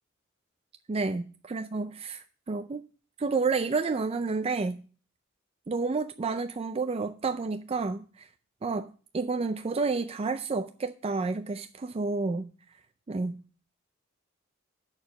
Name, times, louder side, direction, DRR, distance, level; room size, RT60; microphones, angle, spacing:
voice 1, 0.9-2.8 3.2-4.8 5.7-8.3 8.6-12.5 13.1-13.4, right 4 dB, 30° right, 0.4 m, -30 dB
7.2 x 6.5 x 5.9 m
head